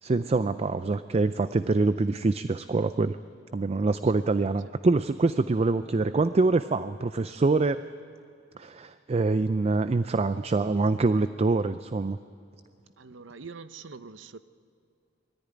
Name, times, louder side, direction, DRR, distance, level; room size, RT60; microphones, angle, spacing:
voice 1, 0.0-3.2 3.5-7.8 8.6-12.2, right 3 dB, 35° right, 12 dB, 0.4 m, -25 dB
voice 2, 13.0-14.4, right 4 dB, 85° right, 12 dB, 0.7 m, -44 dB
21.5 x 14.0 x 9.9 m, 2.5 s
head